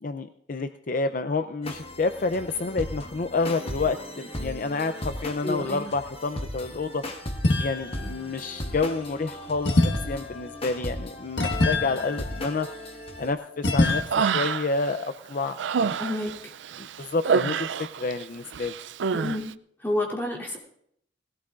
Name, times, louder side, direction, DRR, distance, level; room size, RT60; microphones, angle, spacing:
voice 1, 0.0-7.0 7.6-12.7 13.2-16.0 16.8-18.7, left 3 dB, 50° left, 9 dB, 0.5 m, -29 dB
sound 1, 1.6-13.3, equal, 30° left, 1.2 m, -37 dB
voice 2, 5.4-5.9 16.0-16.5 19.1-19.4 19.8-20.6, left 1 dB, 10° left, -3 dB, 3.0 m, -29 dB
sound 2, 7.4-8.1 9.6-13.1 13.6-14.0, left 2 dB, 70° left, 1.5 m, -26 dB
Human voice, 13.8-14.9 15.3-18.2 18.5-19.4, right 6 dB, 80° right, 0.4 m, -27 dB
19.5 x 16.5 x 2.5 m, 0.71 s
head